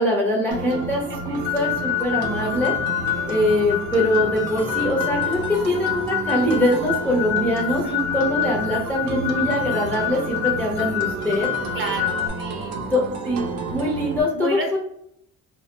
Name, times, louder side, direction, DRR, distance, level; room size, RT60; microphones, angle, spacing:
voice 1, 0.0-2.7 3.3-11.5 12.9-14.8, left 1 dB, 5° left, -4 dB, 0.4 m, -23 dB
sound 1, 0.5-14.2, right 3 dB, 75° right, 0.6 m, -31 dB
sound 2, 1.4-12.3, left 14 dB, 90° left, 0.6 m, -27 dB
voice 2, 7.7-8.1 11.7-12.7 14.3-14.8, right 1 dB, 35° right, 2 dB, 0.6 m, -30 dB
2.2 x 2.0 x 3.0 m, 0.74 s
cardioid pair, 115°, 37 cm